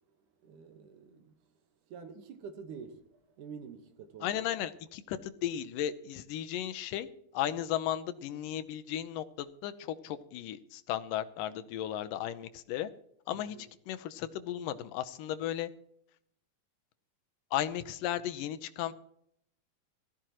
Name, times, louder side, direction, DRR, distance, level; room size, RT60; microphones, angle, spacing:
voice 1, 0.4-1.5 1.9-4.7 13.3-13.7, right 6 dB, 70° right, 2.7 m, -48 dB
voice 2, 4.2-7.1 7.3-12.9 13.3-13.6 13.9-15.7 17.5-18.9, left 11 dB, 80° left, 2.4 m, -35 dB
18.0 x 14.0 x 3.0 m
omnidirectional pair, 3.9 m